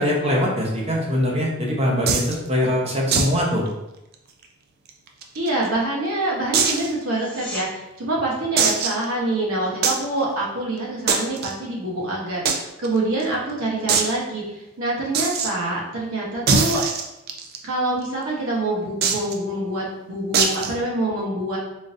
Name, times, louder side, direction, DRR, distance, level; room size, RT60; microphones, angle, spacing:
voice 1, 0.0-3.7, left 1 dB, 30° right, -2 dB, 0.7 m, -22 dB
sound 1, 2.1-2.3 3.1-3.4 3.7-3.8 4.1-4.2 4.9-5.7 6.5-6.9 7.5-7.6 8.6-9.0 9.8-10.0 11.1-11.5 12.4-12.6 12.8-12.9 13.2-13.3 13.9-14.1 15.1-15.5 16.5-17.6 19.0-19.3 20.3-20.7, right 5 dB, 50° right, 0.4 m, -21 dB
voice 2, 5.3-16.8 17.6-21.6, right 2 dB, 80° right, -4 dB, 1.0 m, -26 dB
sound 2, 7.1-7.7 19.0-19.1, left 1 dB, 5° left, 0.5 m, -36 dB
3.7 x 2.5 x 2.6 m, 0.91 s
head